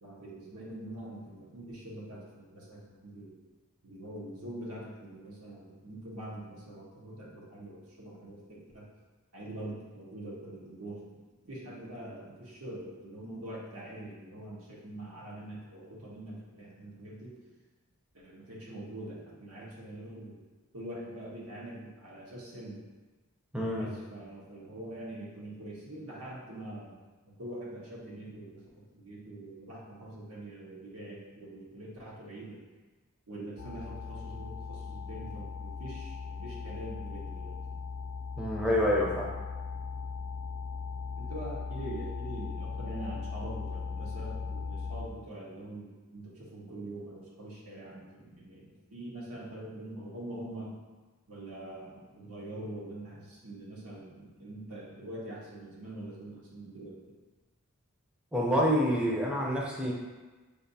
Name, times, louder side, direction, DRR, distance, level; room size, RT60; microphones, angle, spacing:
voice 1, 0.0-3.4 3.8-8.9 9.3-17.3 18.2-20.4 20.7-22.8 23.8-32.7 33.3-37.6 41.2-50.8 51.3-57.0, right 1 dB, 85° right, -4 dB, 1.0 m, -44 dB
voice 2, 23.5-23.9 38.4-39.3 58.3-59.9, equal, 5° right, -3 dB, 0.5 m, -27 dB
sound 1, 33.6-45.1, left 5 dB, 65° left, 0.4 m, -38 dB
5.1 x 2.5 x 2.6 m, 1.3 s
head